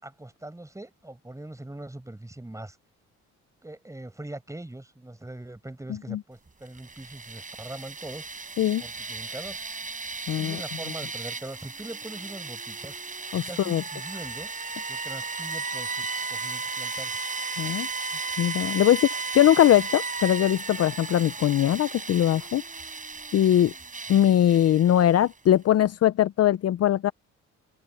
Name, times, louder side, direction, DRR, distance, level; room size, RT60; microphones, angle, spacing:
voice 1, 0.0-2.8 3.6-8.3 8.8-9.6 10.4-13.0 13.5-14.5 14.9-17.2 24.1-24.3, right 1 dB, 10° right, 6.2 m, -41 dB
sound 1, 6.7-25.3, right 3 dB, 25° right, 6.7 m, -35 dB
voice 2, 10.3-10.6 13.3-13.8 17.6-17.9 18.4-22.6 23.3-23.7 24.1-27.1, left 11 dB, 55° left, 0.6 m, -21 dB
open air
cardioid pair, 90°, 30 cm